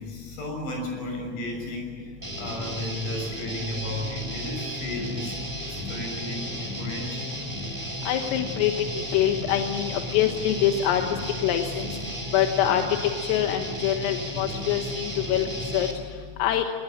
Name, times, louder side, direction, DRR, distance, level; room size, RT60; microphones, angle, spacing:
voice 1, 0.0-2.1 2.4-5.4 5.7-7.2, left 1 dB, 65° left, 2 dB, 8.8 m, -34 dB
Guitar, 2.2-15.9, equal, 5° right, 3.1 m, -34 dB
voice 2, 8.1-8.7 9.1-11.0 11.4-11.8 12.3-12.8 13.2-15.4 15.7-15.9 16.4-16.7, left 11 dB, 90° left, 5 dB, 3.9 m, -24 dB
25.5 x 20.0 x 8.9 m, 2.2 s
omnidirectional pair, 5.9 m